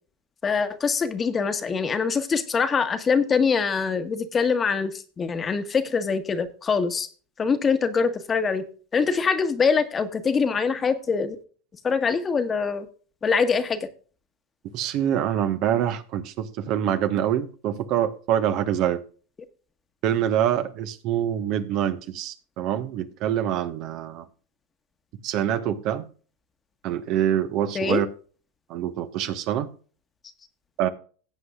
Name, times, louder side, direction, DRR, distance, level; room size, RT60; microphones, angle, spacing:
voice 1, 0.4-7.1 7.4-8.6 8.9-11.4 11.8-12.9 13.2-13.8 27.7-28.0, left 5 dB, 25° left, 9 dB, 1.5 m, -24 dB
voice 2, 14.7-19.0 20.0-24.3 25.2-26.0 26.8-28.1 28.7-29.7 30.8-30.9, right 10 dB, 55° right, 9 dB, 1.3 m, -25 dB
17.5 x 8.1 x 2.4 m, 0.40 s
hypercardioid pair, 90°, 0 cm